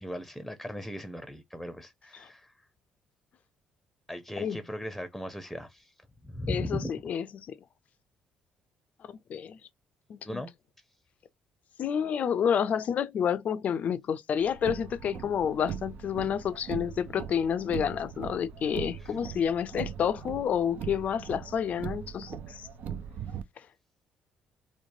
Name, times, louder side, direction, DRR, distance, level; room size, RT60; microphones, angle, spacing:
voice 1, 0.0-2.5 4.1-5.9 6.2-6.9 10.3-10.5, equal, ahead, 0.6 m, -37 dB
voice 2, 6.5-7.5 9.0-9.6 10.1-10.4 11.8-22.6, left 8 dB, 55° left, 0.4 m, -29 dB
Car, 14.4-23.4, right 8 dB, 65° right, 0.4 m, -40 dB
3.1 x 2.1 x 2.5 m
hypercardioid pair, 55°, 3 cm